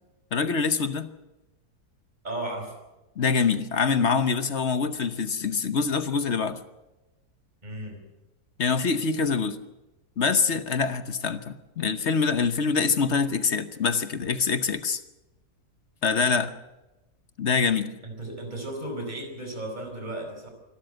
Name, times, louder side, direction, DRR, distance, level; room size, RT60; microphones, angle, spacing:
voice 1, 0.3-1.1 3.2-6.6 8.6-9.6 10.2-15.0 16.0-16.5 17.4-17.9, left 5 dB, 50° left, 11 dB, 1.2 m, -25 dB
voice 2, 2.2-2.7 7.6-8.0 18.0-20.5, right 1 dB, 25° right, 4 dB, 5.0 m, -35 dB
25.5 x 13.0 x 7.8 m, 1.0 s
omnidirectional pair, 1.7 m